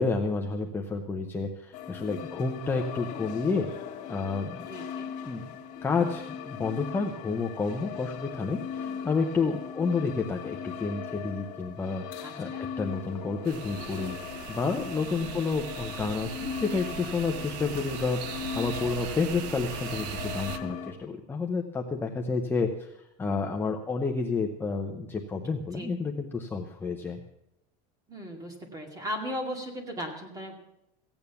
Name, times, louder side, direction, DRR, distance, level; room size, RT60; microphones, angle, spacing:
voice 1, 0.0-3.7 4.1-4.6 5.2-5.5 5.8-12.5 12.8-14.2 14.5-27.2, left 4 dB, 10° left, 2 dB, 0.7 m, -30 dB
sound 1, 1.7-20.9, left 8 dB, 35° left, 1.8 m, -39 dB
voice 2, 4.7-5.1 8.8-9.1 12.2-12.6 14.9-15.4 25.7-25.9 28.1-30.6, equal, 15° right, 3 dB, 2.2 m, -38 dB
sound 2, 13.4-20.6, right 8 dB, 90° right, 1.0 m, -39 dB
15.5 x 8.9 x 6.9 m, 0.82 s
cardioid pair, 165°, 21 cm